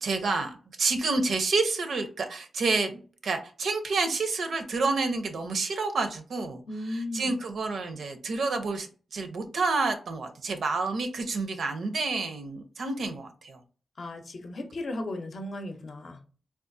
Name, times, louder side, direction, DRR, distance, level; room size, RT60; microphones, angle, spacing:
voice 1, 0.0-13.6, right 3 dB, 75° right, 7 dB, 0.5 m, -29 dB
voice 2, 6.7-7.3 14.0-16.2, left 1 dB, 55° left, 5 dB, 0.6 m, -35 dB
3.6 x 2.3 x 2.6 m, 0.38 s
wide cardioid pair, 130°, 0 cm